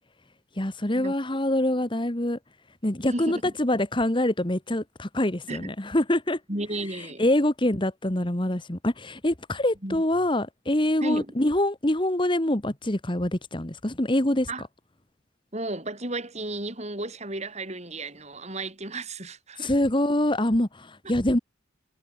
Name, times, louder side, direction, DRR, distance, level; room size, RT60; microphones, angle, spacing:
voice 1, 0.6-2.4 2.8-6.4 7.2-14.5 19.6-21.4, left 1 dB, 25° left, 1.6 m, -25 dB
voice 2, 3.0-3.5 5.5-5.7 6.5-7.3 9.8-10.0 11.0-11.3 14.5-14.6 15.5-19.7 21.0-21.1, right 2 dB, 35° right, 7.4 m, -33 dB
head